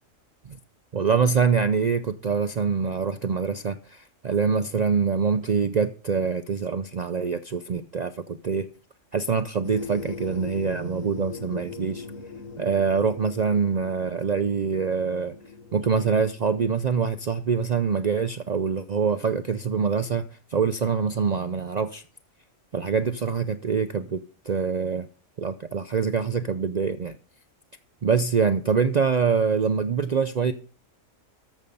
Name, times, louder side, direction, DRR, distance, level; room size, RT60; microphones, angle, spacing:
voice 1, 0.9-8.7 9.1-12.0 12.6-15.3 15.7-20.2 20.5-22.0 22.7-24.2 24.5-25.1 25.4-27.1 28.0-30.5, right 6 dB, 55° right, 0.4 m, -25 dB
sound 1, 9.6-16.8, left 5 dB, 85° left, 1.3 m, -40 dB
13.5 x 7.0 x 5.3 m
omnidirectional pair, 1.4 m